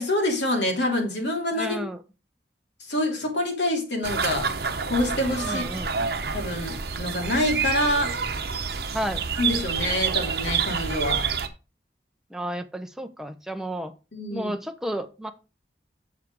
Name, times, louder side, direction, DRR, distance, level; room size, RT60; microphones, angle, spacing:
voice 1, 0.0-1.8 2.8-4.5 4.9-5.6 6.3-8.2 9.3-11.2 14.1-14.5, left 1 dB, 80° left, 1 dB, 3.2 m, -26 dB
voice 2, 1.5-2.0 5.4-5.9 8.9-9.2 12.3-13.9 14.3-15.3, right 1 dB, 5° right, 7 dB, 0.8 m, -32 dB
sound 1, 4.0-11.5, right 5 dB, 60° right, 1.0 m, -28 dB
7.4 x 7.3 x 4.8 m, 0.31 s
head